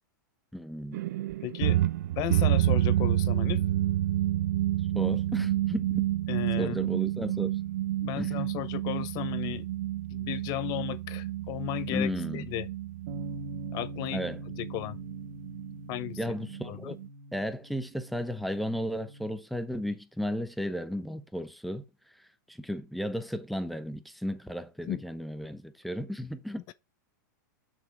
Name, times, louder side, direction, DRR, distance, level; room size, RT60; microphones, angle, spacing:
voice 1, 0.5-1.0 4.9-6.0 6.6-7.5 8.2-8.5 11.9-12.5 14.1-14.4 16.2-17.0 17.3-21.8 22.5-26.7, equal, ahead, 1.0 m, -34 dB
sound 1, 0.9-17.1, right 13 dB, 65° right, 0.5 m, -29 dB
voice 2, 1.4-1.8 2.2-3.6 6.3-6.8 8.0-9.7 10.1-12.7 13.7-14.2 14.6-15.0 15.9-16.2 16.7-17.0 24.9-25.0 26.7-26.8, left 16 dB, 40° left, 0.7 m, -34 dB
Bass guitar, 13.1-19.3, right 1 dB, 50° right, 2.3 m, -44 dB
7.4 x 6.2 x 5.0 m
hypercardioid pair, 130°, 10 cm